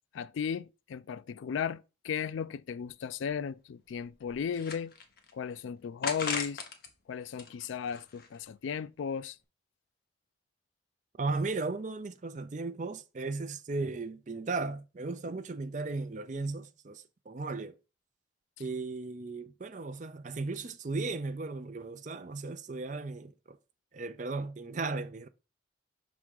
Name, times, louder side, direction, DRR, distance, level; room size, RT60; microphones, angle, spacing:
voice 1, 0.1-4.9 5.3-6.6 7.1-9.4, left 7 dB, 75° left, 0.3 m, -35 dB
sound 1, 2.9-3.0 3.3-3.4 4.0-5.3 6.0-6.9 7.3-8.5, left 5 dB, 50° left, 0.9 m, -38 dB
voice 2, 11.2-17.8 18.6-23.6 23.9-25.3, right 3 dB, 40° right, 0.5 m, -36 dB
5.7 x 3.7 x 4.7 m
head